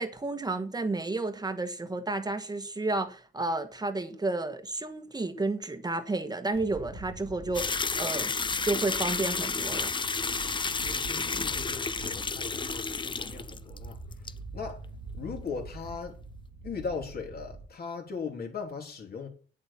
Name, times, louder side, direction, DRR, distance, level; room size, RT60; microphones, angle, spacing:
voice 1, 0.0-8.3 8.6-9.9, right 2 dB, 20° right, 1.3 m, -31 dB
sound 1, 6.5-17.7, right 3 dB, 85° right, 1.8 m, -45 dB
sound 2, 7.5-13.9 14.1-14.3, left 4 dB, 25° left, 0.7 m, -31 dB
voice 2, 10.8-14.0 14.5-14.8 15.1-16.2 16.6-19.3, left 5 dB, 50° left, 3.5 m, -38 dB
8.8 x 7.4 x 7.2 m
cardioid pair, 90°, 20 cm